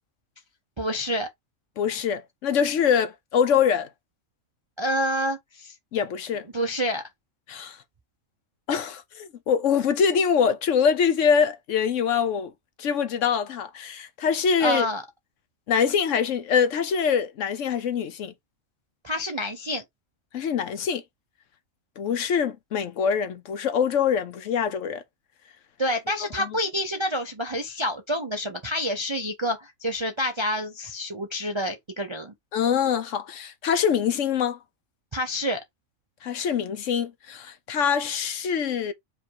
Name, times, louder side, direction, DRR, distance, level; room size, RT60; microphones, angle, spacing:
voice 1, 0.8-1.3 4.8-5.7 6.5-7.0 14.6-15.0 19.0-19.8 25.8-32.3 35.1-35.6, equal, 40° right, 0.4 m, -28 dB
voice 2, 1.8-3.9 5.9-6.4 7.5-7.8 8.7-12.5 12.8-14.9 15.7-18.3 20.3-21.0 22.0-25.0 32.5-34.6 36.2-38.9, left 7 dB, 65° left, 1.0 m, -24 dB
5.0 x 2.3 x 4.6 m
omnidirectional pair, 1.4 m